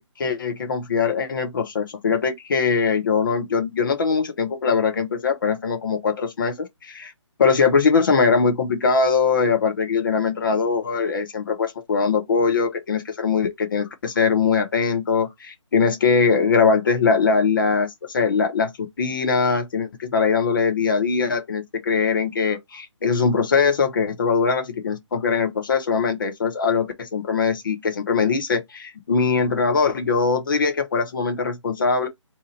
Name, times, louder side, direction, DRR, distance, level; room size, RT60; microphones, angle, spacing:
voice 1, 0.0-7.1 7.4-18.7 19.0-32.1, left 5 dB, 45° left, 0.8 m, -21 dB
2.9 x 2.5 x 4.1 m
figure-of-eight pair, 145°, 16 cm